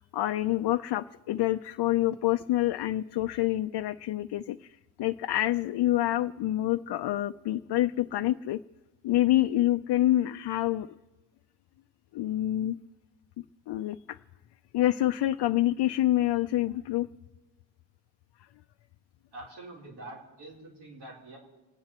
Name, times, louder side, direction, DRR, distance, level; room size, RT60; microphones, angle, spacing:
voice 1, 0.0-8.6 9.0-10.9 12.1-12.8 13.7-14.2 14.7-17.1, left 14 dB, 85° left, 7 dB, 0.5 m, -27 dB
voice 2, 19.3-21.4, right 2 dB, 90° right, -3 dB, 4.8 m, -45 dB
29.0 x 9.7 x 4.3 m, 1.1 s
wide cardioid pair, 180°, 39 cm